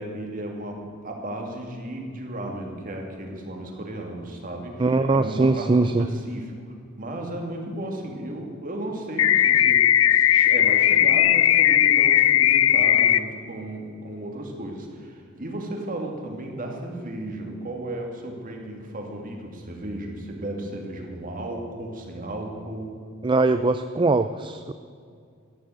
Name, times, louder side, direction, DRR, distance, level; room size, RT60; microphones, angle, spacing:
voice 1, 0.0-6.5 7.0-9.8 10.1-23.0, right 1 dB, 40° right, 1 dB, 2.4 m, -34 dB
voice 2, 4.8-6.1 23.2-24.7, right 3 dB, 25° right, 10 dB, 0.4 m, -21 dB
sound 1, 9.2-13.2, left 11 dB, 70° left, 0.5 m, -17 dB
14.5 x 10.5 x 7.9 m, 2.2 s
head